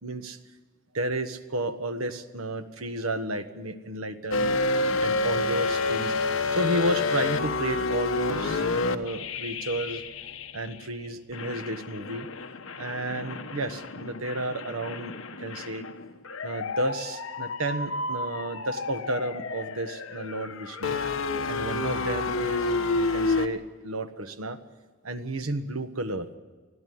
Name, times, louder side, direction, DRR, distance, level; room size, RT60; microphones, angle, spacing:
voice 1, 0.0-0.4 0.9-4.5 5.0-10.0 10.5-12.3 12.8-15.8 16.4-21.0 21.5-24.6 25.0-26.3, right 1 dB, 80° right, 8 dB, 1.5 m, -32 dB
sound 1, 4.3-10.9 11.3-23.5, left 3 dB, 70° left, 1.2 m, -29 dB
21.0 x 13.5 x 9.5 m, 1.4 s
head